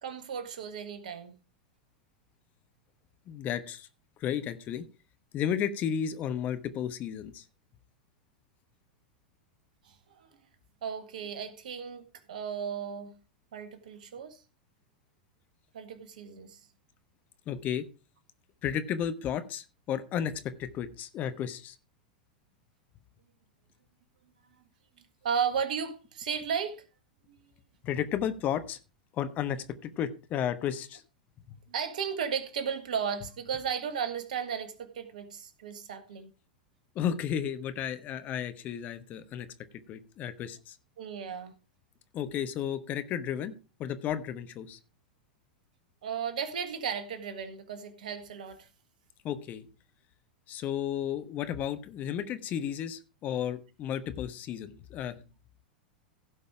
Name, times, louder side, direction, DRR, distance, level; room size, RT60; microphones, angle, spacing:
voice 1, 0.0-1.3 9.8-10.3 10.8-13.2 13.5-14.4 15.7-16.6 25.2-26.9 27.3-27.4 31.7-36.3 41.0-41.5 46.0-48.7, right 7 dB, 65° right, 1.7 m, -35 dB
voice 2, 3.3-3.9 4.2-4.9 5.3-7.4 17.5-17.9 18.6-21.8 27.8-28.8 29.1-31.0 31.5-31.6 36.9-39.5 39.9-40.8 42.1-43.5 43.8-44.8 49.2-49.7 50.5-55.2, left 9 dB, 35° left, 1.1 m, -33 dB
16.0 x 5.4 x 4.8 m
figure-of-eight pair, 90°, 5 cm